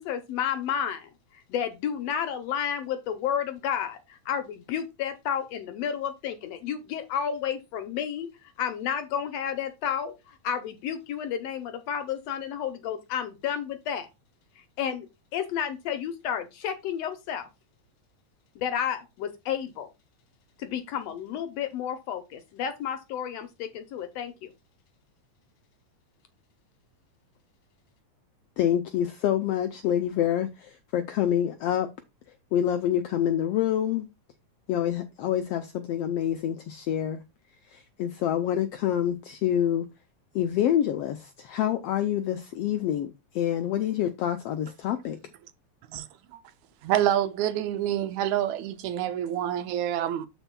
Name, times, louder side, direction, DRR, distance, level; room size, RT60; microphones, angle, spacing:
voice 1, 0.0-14.1 14.6-15.1 15.3-17.5 18.5-19.9 20.6-24.5, left 8 dB, 70° left, 1.7 m, -31 dB
voice 2, 28.6-31.9 32.5-34.1 34.7-37.2 37.7-39.9 40.3-45.2, left 10 dB, 90° left, 1.4 m, -27 dB
voice 3, 46.8-50.3, right 11 dB, 80° right, 1.8 m, -27 dB
12.0 x 4.4 x 2.2 m
omnidirectional pair, 3.4 m